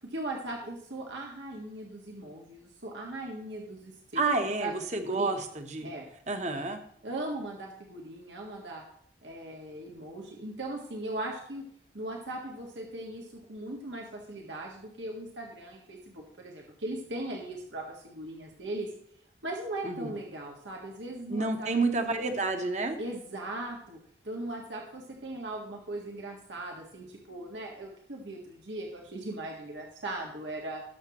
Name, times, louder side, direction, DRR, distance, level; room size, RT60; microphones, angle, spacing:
voice 1, 0.0-5.4 5.8-6.0 7.0-8.8 9.2-11.6 11.9-18.9 19.4-21.7 22.0-22.1 23.0-24.0 24.2-30.8, right 1 dB, 85° right, 0 dB, 1.6 m, -39 dB
voice 2, 4.1-5.9 6.3-6.8 19.8-20.1 21.3-23.0, right 3 dB, 40° right, 6 dB, 1.1 m, -29 dB
18.0 x 7.2 x 3.0 m, 0.66 s
head